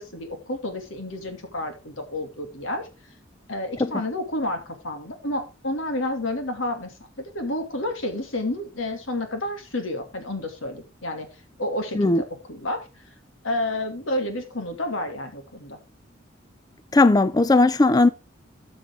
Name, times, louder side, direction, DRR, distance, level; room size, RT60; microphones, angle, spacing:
voice 1, 0.0-2.9 3.5-7.0 7.2-13.0 13.4-15.8, left 1 dB, 85° left, 2.6 m, -30 dB
voice 2, 16.9-18.1, left 2 dB, 20° left, 0.4 m, -17 dB
13.5 x 6.3 x 3.7 m
head